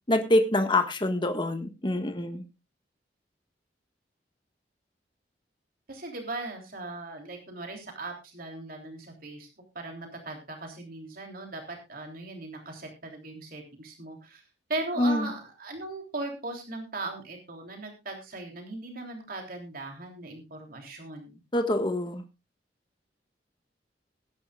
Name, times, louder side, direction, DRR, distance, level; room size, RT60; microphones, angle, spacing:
voice 1, 0.1-2.4 15.0-15.3 21.5-22.2, left 1 dB, 30° left, 6 dB, 1.6 m, -25 dB
voice 2, 5.9-9.5 9.7-14.4 14.7-21.4, right 2 dB, 55° right, 2 dB, 3.3 m, -38 dB
20.5 x 10.5 x 2.4 m, 0.26 s
head